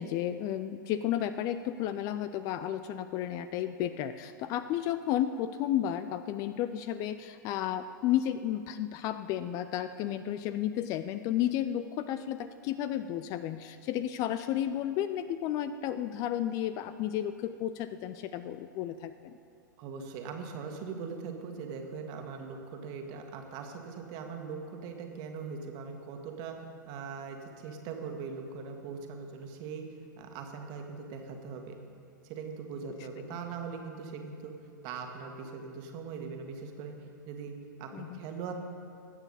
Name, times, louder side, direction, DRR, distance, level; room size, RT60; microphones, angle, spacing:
voice 1, 0.0-19.3 37.9-38.2, left 11 dB, 30° left, 12 dB, 0.4 m, -32 dB
voice 2, 19.8-29.8 30.2-31.8 32.2-34.5 34.8-36.9 37.3-38.5, right 5 dB, 40° right, 4 dB, 1.7 m, -41 dB
21.0 x 9.0 x 4.1 m, 2.4 s
figure-of-eight pair, 100°, 11 cm